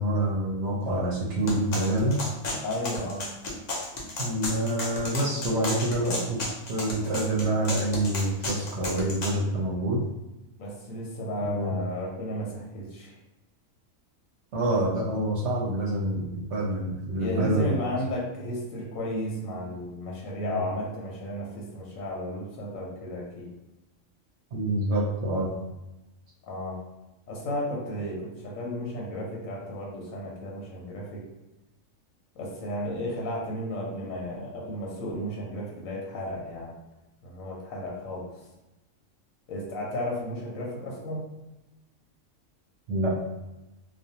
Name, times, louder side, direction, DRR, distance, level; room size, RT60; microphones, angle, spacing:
voice 1, 0.0-2.2 4.2-6.4 6.7-10.0 11.4-11.7 14.5-17.7 20.4-20.6 24.5-25.5 42.9-43.2, right 1 dB, 70° right, -3 dB, 0.8 m, -27 dB
sound 1, 1.5-9.4, left 2 dB, 50° left, 0.5 m, -33 dB
voice 2, 2.6-3.3 10.6-13.1 17.2-23.5 26.4-26.8 27.3-31.2 32.4-36.7 37.2-38.4 39.5-41.2, left 1 dB, 90° left, -3 dB, 1.1 m, -33 dB
2.5 x 2.3 x 2.7 m, 1.0 s
omnidirectional pair, 1.4 m